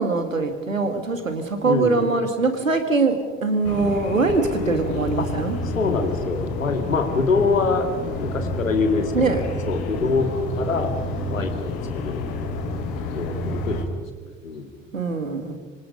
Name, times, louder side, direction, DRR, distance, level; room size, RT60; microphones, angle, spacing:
voice 1, 0.0-5.6 9.1-9.4 14.9-15.6, right 3 dB, 90° right, 8 dB, 1.9 m, -22 dB
voice 2, 1.6-2.0 5.2-5.3 5.7-10.3 10.6-10.9 11.3-11.8 12.0-12.2 13.1-13.4 13.7-14.7, left 4 dB, 85° left, 6 dB, 2.3 m, -24 dB
sound 1, 3.6-13.8, left 2 dB, 65° left, 3.2 m, -29 dB
26.0 x 25.5 x 5.4 m, 1.4 s
figure-of-eight pair, 50°, 38 cm